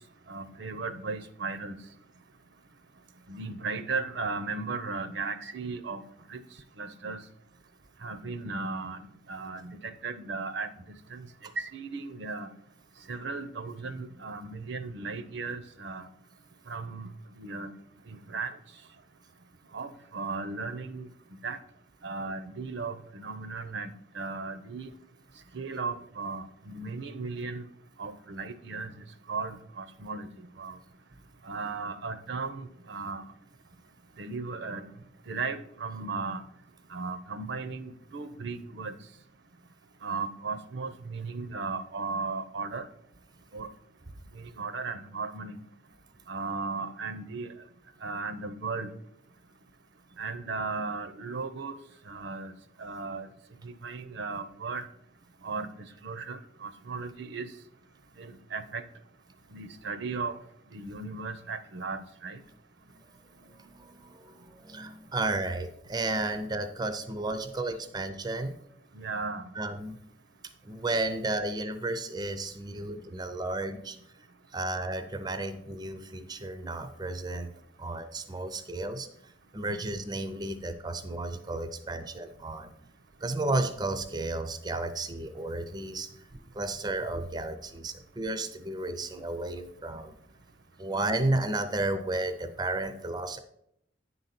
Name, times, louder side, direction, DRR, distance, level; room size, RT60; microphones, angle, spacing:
voice 1, 0.3-1.8 3.3-6.0 6.3-6.4 6.8-7.2 8.0-9.0 9.3-10.7 11.1-11.3 11.6-12.5 13.1-16.1 16.7-17.1 17.4-17.7 18.1-18.5 19.7-21.1 21.4-21.6 22.0-23.9 24.1-24.9 25.5-27.6 28.0-30.3 30.6-30.8 31.4-33.3 34.2-34.9 35.3-36.4 36.9-39.0 40.0-42.9 43.5-43.7 44.6-45.6 46.3-47.5 48.0-48.9 50.2-51.7 52.1-52.5 52.8-53.3 53.6-54.8 55.4-55.7 56.0-57.5 58.2-58.8 59.5-60.3 60.7-62.4 68.9-69.5, right 4 dB, 60° right, 12 dB, 0.6 m, -36 dB
voice 2, 63.3-68.5 69.6-70.0 70.6-74.0 74.5-77.5 77.8-82.7 83.2-86.3 86.5-90.1 90.8-93.4, right 2 dB, 20° right, 9 dB, 0.5 m, -33 dB
9.7 x 3.9 x 5.8 m, 0.74 s
head